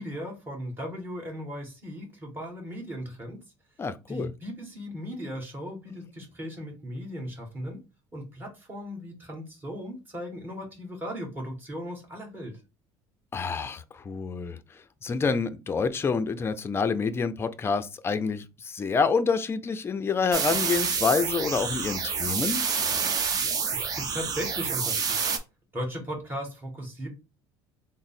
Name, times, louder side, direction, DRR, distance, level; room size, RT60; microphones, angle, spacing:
voice 1, 0.0-3.4 4.1-7.8 8.1-12.6 23.7-25.2 25.7-27.1, equal, 20° right, 1.7 m, -37 dB
voice 2, 3.8-4.3 13.3-14.6 15.0-22.6, left 5 dB, 25° left, 0.4 m, -27 dB
sound 1, 20.3-25.4, right 5 dB, 35° right, 0.7 m, -28 dB
3.6 x 2.0 x 4.1 m
cardioid pair, 120°, 10 cm